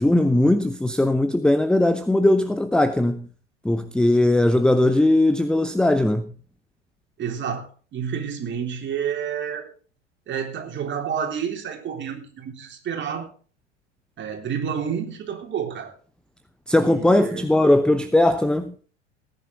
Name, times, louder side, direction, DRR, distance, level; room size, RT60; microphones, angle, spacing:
voice 1, 0.0-3.2 3.6-6.2 16.7-18.7, left 1 dB, ahead, 0.8 m, -19 dB
voice 2, 7.2-9.7 10.3-13.3 14.2-15.9 16.8-17.5, right 7 dB, 30° right, 3.6 m, -29 dB
18.5 x 10.0 x 3.9 m
figure-of-eight pair, 80°, 36 cm